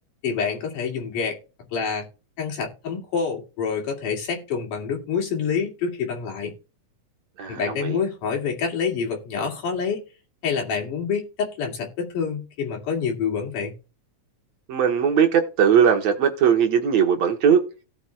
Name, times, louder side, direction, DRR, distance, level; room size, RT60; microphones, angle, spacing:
voice 1, 0.2-1.4 1.7-2.1 2.4-6.5 7.5-10.0 10.4-13.7, left 6 dB, 85° left, 4.1 m, -27 dB
voice 2, 7.4-8.0 14.7-17.7, right 7 dB, 65° right, 2.4 m, -19 dB
16.5 x 7.1 x 2.4 m
omnidirectional pair, 3.6 m